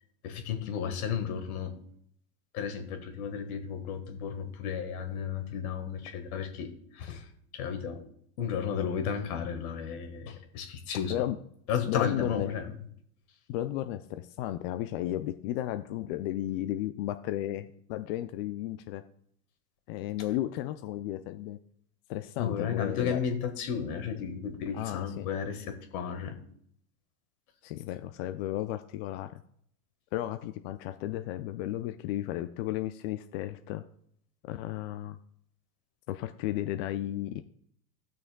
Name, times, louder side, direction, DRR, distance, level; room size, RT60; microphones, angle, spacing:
voice 1, 0.2-1.8 2.5-8.0 8.4-11.2 11.7-12.7 22.4-26.4, left 7 dB, 65° left, 6 dB, 1.6 m, -33 dB
voice 2, 11.9-12.5 13.5-19.0 19.9-21.6 22.1-23.2 24.7-25.3 27.6-29.4 30.1-33.8 34.4-35.2 36.1-37.4, left 13 dB, 45° left, 9 dB, 0.5 m, -34 dB
16.0 x 6.3 x 2.2 m, 0.67 s
hypercardioid pair, 105°, 46 cm